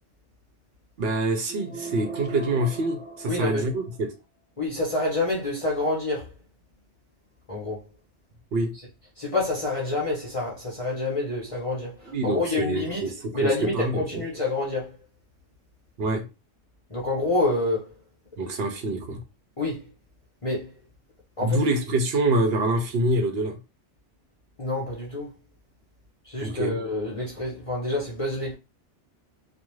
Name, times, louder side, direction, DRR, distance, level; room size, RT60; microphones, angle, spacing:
voice 1, 1.0-4.1 8.5-8.7 12.1-14.0 16.0-16.2 18.4-19.2 21.4-23.6 26.4-26.8, right 1 dB, 60° right, 0.8 m, -26 dB
sound 1, 1.5-4.1, right 3 dB, 10° right, 0.7 m, -39 dB
voice 2, 3.3-3.7 4.6-6.3 7.5-7.8 9.2-15.0 16.9-17.9 19.6-19.9 20.4-20.7 21.4-21.6 24.6-25.3 26.2-28.5, left 2 dB, 30° left, 0.8 m, -27 dB
2.4 x 2.2 x 3.0 m
omnidirectional pair, 1.2 m